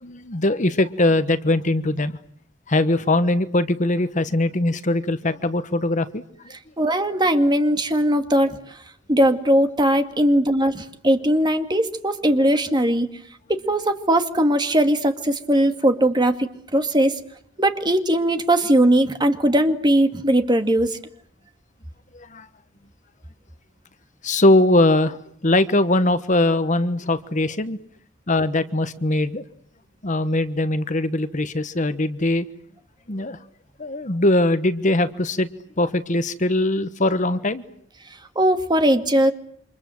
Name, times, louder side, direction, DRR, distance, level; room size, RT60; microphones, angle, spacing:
voice 1, 0.0-2.2 2.7-6.2 22.1-22.5 24.2-27.8 28.3-29.4 30.0-32.5 33.1-33.4 33.8-35.5 35.8-37.6, left 2 dB, 40° left, 12 dB, 1.2 m, -21 dB
voice 2, 6.8-8.6 9.1-13.1 13.5-17.2 17.6-21.0 38.4-39.3, right 1 dB, 20° right, 7 dB, 2.0 m, -19 dB
28.5 x 26.5 x 7.8 m, 0.64 s
head